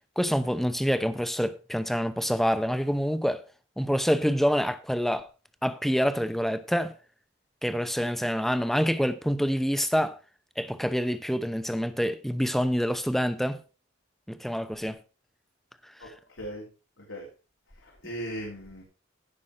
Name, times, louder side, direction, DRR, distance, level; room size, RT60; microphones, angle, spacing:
voice 1, 0.2-3.4 3.8-5.3 5.6-6.9 7.6-10.2 10.6-13.6 14.3-15.0, equal, ahead, 0.8 m, -26 dB
voice 2, 16.0-16.7 17.0-17.3 17.8-18.8, equal, 85° left, 3.3 m, -38 dB
15.5 x 6.1 x 4.9 m
head